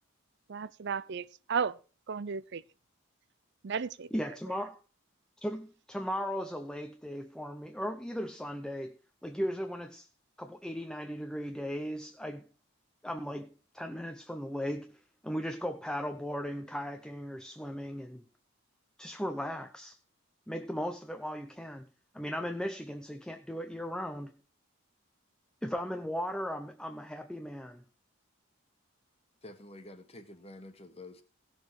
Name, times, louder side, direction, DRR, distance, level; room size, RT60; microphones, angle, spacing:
voice 1, 0.5-1.8 2.1-2.6 3.6-4.1, right 6 dB, 55° right, 0.5 m, -34 dB
voice 2, 4.1-4.8 5.4-10.1 10.4-12.4 13.0-18.3 19.0-19.9 20.5-21.9 22.1-24.3 25.6-27.8, equal, 5° left, 0.6 m, -37 dB
voice 3, 29.4-31.2, left 2 dB, 30° left, 1.5 m, -48 dB
17.0 x 6.6 x 4.8 m
head